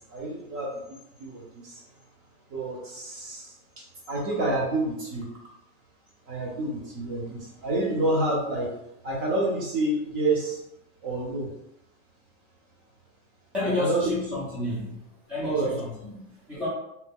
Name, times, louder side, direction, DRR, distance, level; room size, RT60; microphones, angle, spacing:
voice 1, 0.1-0.8 1.2-1.8 2.5-5.3 6.3-8.7 9.0-10.6 11.0-11.5 13.6-14.1 15.4-15.7, right 2 dB, 35° right, -2 dB, 0.8 m, -28 dB
voice 2, 13.5-15.0 15.3-16.7, left 2 dB, 5° right, -10 dB, 0.5 m, -30 dB
2.8 x 2.3 x 3.6 m, 0.86 s
supercardioid pair, 160°, 38 cm